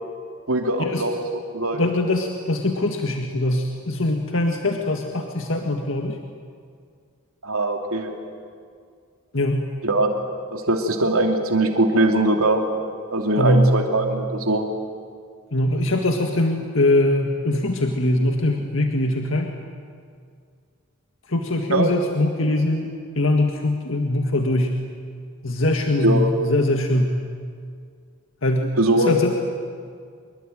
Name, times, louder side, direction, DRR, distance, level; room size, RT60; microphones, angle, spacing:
voice 1, 0.5-1.8 7.4-8.1 9.8-10.1 10.5-12.6 13.1-14.7 21.7-21.9 26.0-26.3 28.8-29.1, right 1 dB, 80° right, 3 dB, 2.8 m, -21 dB
voice 2, 1.7-6.2 9.3-9.7 13.4-13.7 15.5-19.5 21.3-22.9 23.2-24.7 25.4-27.1 28.4-29.3, left 1 dB, 60° left, 3 dB, 1.9 m, -22 dB
25.5 x 23.0 x 9.2 m, 2.2 s
head